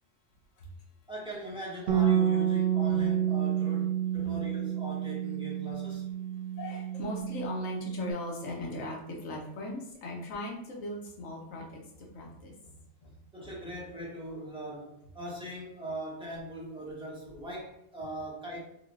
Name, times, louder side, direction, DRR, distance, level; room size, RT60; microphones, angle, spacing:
voice 1, 1.1-6.0 13.3-18.6, equal, 5° right, -6 dB, 1.0 m, -40 dB
Bass guitar, 1.9-8.1, right 10 dB, 85° right, 1.0 m, -29 dB
voice 2, 6.5-13.2 13.4-13.7, left 2 dB, 90° left, -1 dB, 1.3 m, -39 dB
3.5 x 3.3 x 2.5 m, 0.80 s
omnidirectional pair, 1.3 m